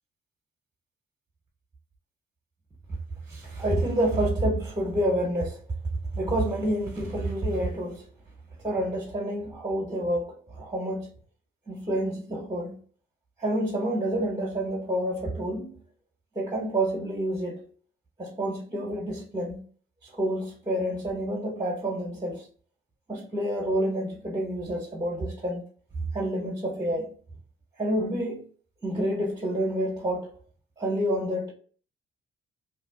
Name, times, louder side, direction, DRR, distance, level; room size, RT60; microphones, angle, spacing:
voice 1, 3.3-5.6 6.1-8.1 8.6-11.1 11.7-12.7 13.4-15.8 16.3-17.6 18.2-19.6 20.0-22.5 23.1-25.6 26.1-27.1 27.8-28.5 28.8-30.4 30.8-31.5, right 1 dB, 20° right, 1.0 m, -28 dB
2.8 x 2.3 x 3.6 m
cardioid pair, 90°, 20 cm